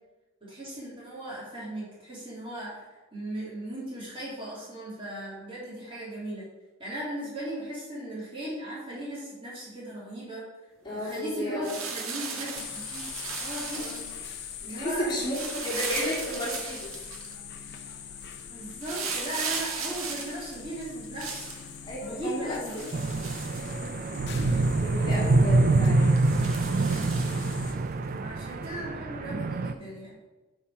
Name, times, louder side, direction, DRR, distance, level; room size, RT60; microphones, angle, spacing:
voice 1, 0.4-6.5 6.8-10.4 10.9-13.1 13.4-14.1 14.6-16.0 16.4-16.5 18.5-21.5 22.0-22.9 25.1-25.6 28.2-30.1, right 1 dB, 25° right, -7 dB, 2.8 m, -37 dB
voice 2, 10.8-11.7 12.3-12.6 13.8-14.1 14.6-15.4 15.6-16.9 21.8-22.8 24.8-26.1, left 1 dB, 20° left, -8 dB, 2.3 m, -33 dB
sound 1, 11.6-14.2 15.3-17.3 18.8-21.6 22.5-24.2 24.6-24.7 25.1-25.3 26.2-27.8 28.6-28.7, right 5 dB, 85° right, 1.4 m, -36 dB
sound 2, 12.5-27.7, left 7 dB, 55° left, 0.7 m, -43 dB
sound 3, 22.9-29.7, right 2 dB, 40° right, 0.4 m, -25 dB
8.8 x 4.6 x 4.9 m, 1.2 s
head